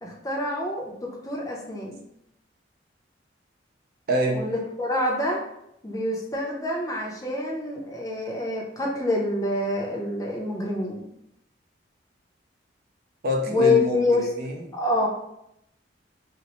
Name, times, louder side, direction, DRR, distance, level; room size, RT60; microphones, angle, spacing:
voice 1, 0.0-2.0 4.3-5.4 5.8-11.1 13.5-14.2 14.7-15.1, left 2 dB, 20° left, -1 dB, 0.5 m, -26 dB
voice 2, 4.1-4.5 13.2-14.6, equal, 55° right, 2 dB, 0.5 m, -26 dB
4.1 x 2.0 x 2.9 m, 0.79 s
head